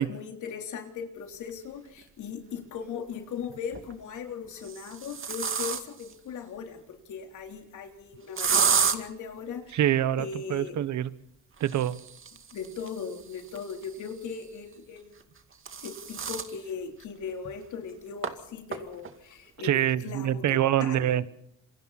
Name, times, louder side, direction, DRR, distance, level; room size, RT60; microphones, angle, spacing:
voice 1, 0.0-9.8 10.2-10.8 12.5-15.2 15.8-21.1, left 6 dB, 75° left, 4 dB, 3.7 m, -38 dB
sound 1, 2.0-2.1 3.5-3.9 4.5-6.1 8.4-9.0 11.6-14.2 15.2-16.5 17.0-17.1 17.4-17.5 18.2-18.3 18.7-19.1, right 6 dB, 45° right, 2.2 m, -30 dB
voice 2, 9.7-11.1 11.6-12.0 19.6-21.3, right 11 dB, 70° right, 16 dB, 1.3 m, -25 dB
27.5 x 24.0 x 4.2 m, 0.78 s
cardioid pair, 90°, 30 cm